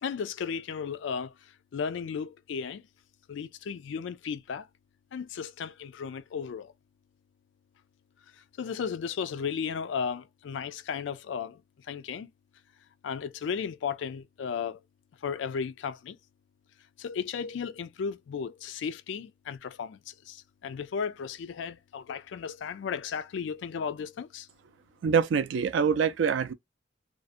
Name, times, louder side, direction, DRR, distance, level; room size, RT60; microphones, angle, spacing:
voice 1, 0.0-2.9 3.3-4.7 5.1-6.7 8.6-11.6 11.9-12.3 13.0-14.8 15.2-16.2 17.0-24.5, left 6 dB, 75° left, 0.3 m, -35 dB
voice 2, 25.0-26.5, right 6 dB, 75° right, 0.3 m, -25 dB
2.5 x 2.0 x 2.4 m
head